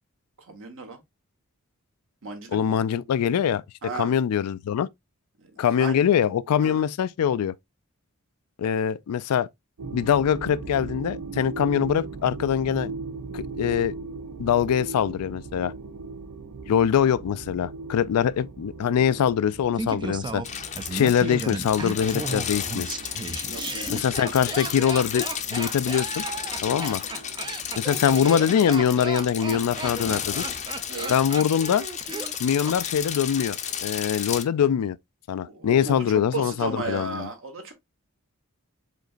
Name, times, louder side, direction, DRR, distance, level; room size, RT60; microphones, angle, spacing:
voice 1, 0.5-1.0 2.2-2.8 3.8-4.1 5.4-6.0 6.6-6.8 23.5-24.0 27.0-27.2 30.9-31.1 35.4-37.7, right 3 dB, 60° right, 1.3 m, -35 dB
voice 2, 2.5-3.6 4.0-4.9 5.6-7.5 8.6-9.5 9.9-12.9 13.3-13.9 14.4-15.7 16.7-20.4 20.9-22.9 23.9-26.2 26.6-27.0 27.8-30.4 31.1-31.9 32.4-35.0 35.3-37.3, left 8 dB, 80° left, 0.3 m, -23 dB
sound 1, 9.8-29.2, right 3 dB, 80° right, 0.5 m, -39 dB
Laughter, 19.8-32.8 33.0-33.1, right 3 dB, 20° right, 0.4 m, -35 dB
sound 2, 20.4-34.4, left 8 dB, 30° left, 0.6 m, -33 dB
5.1 x 3.9 x 2.4 m
head